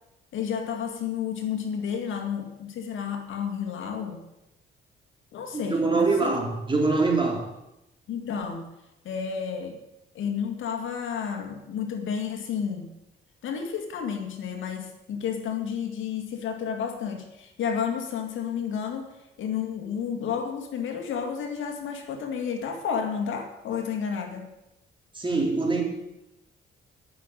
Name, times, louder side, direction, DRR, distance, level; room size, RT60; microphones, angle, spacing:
voice 1, 0.3-4.2 5.3-6.4 8.1-8.7 9.0-9.8 10.1-12.9 13.4-24.5, left 7 dB, 75° left, 5 dB, 2.2 m, -31 dB
voice 2, 5.5-7.4 25.2-25.8, right 3 dB, 25° right, 0 dB, 3.5 m, -24 dB
11.0 x 6.7 x 9.2 m, 0.90 s
cardioid pair, 90°, 20 cm